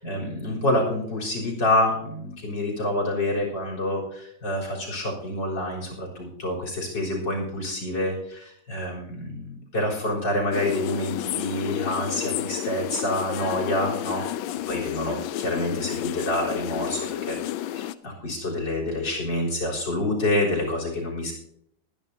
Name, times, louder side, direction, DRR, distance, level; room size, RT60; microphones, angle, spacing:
voice 1, 0.0-21.3, left 1 dB, 60° left, 0 dB, 4.6 m, -27 dB
sound 1, 10.5-17.9, left 12 dB, 80° left, 1.4 m, -31 dB
23.0 x 10.5 x 2.8 m, 0.73 s
omnidirectional pair, 2.2 m